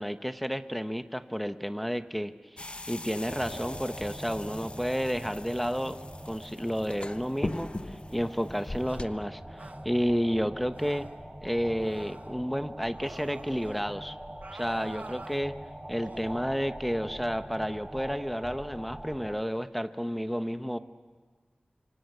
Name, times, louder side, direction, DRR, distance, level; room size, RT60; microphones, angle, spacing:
voice 1, 0.0-2.3 2.9-6.0 6.3-11.1 11.4-14.2 14.5-15.6 15.9-20.8, equal, ahead, 10 dB, 1.0 m, -31 dB
sound 1, 2.6-9.1, left 2 dB, 35° left, 1.0 m, -40 dB
sound 2, 3.3-19.4, right 1 dB, 15° right, 2.6 m, -43 dB
sound 3, 8.8-9.0 9.6-9.9 10.7-11.2 11.8-12.3 12.9-13.8 14.4-15.4 16.0-16.3, right 2 dB, 60° right, 1.1 m, -47 dB
26.5 x 24.0 x 7.9 m, 1.5 s
wide cardioid pair, 60°, 3 cm